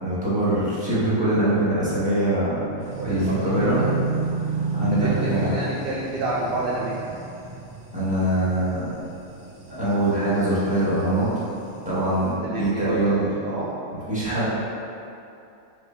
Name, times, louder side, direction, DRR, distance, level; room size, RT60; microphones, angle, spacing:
voice 1, 0.0-2.6 3.0-3.8 4.7-5.5 7.9-8.9 9.7-11.3 11.8-13.3 13.9-14.5, right 1 dB, 5° right, -11 dB, 1.2 m, -23 dB
sound 1, 2.8-12.3, right 4 dB, 80° right, 1.1 m, -32 dB
voice 2, 3.0-3.9 4.9-6.9 12.4-13.8, right 2 dB, 60° right, -5 dB, 0.5 m, -29 dB
3.3 x 3.2 x 4.4 m, 2.7 s
omnidirectional pair, 1.4 m